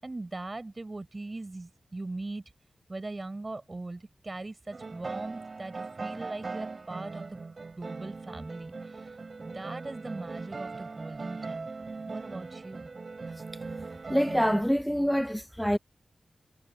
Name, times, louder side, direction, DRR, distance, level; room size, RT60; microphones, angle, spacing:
voice 1, 0.0-2.5 2.9-7.4 7.7-12.9, right 2 dB, 35° right, 5.9 m, -40 dB
sound 1, 4.7-14.6, right 4 dB, 55° right, 4.4 m, -40 dB
voice 2, 14.1-15.8, equal, ahead, 0.7 m, -26 dB
cardioid pair, 70°, 0 cm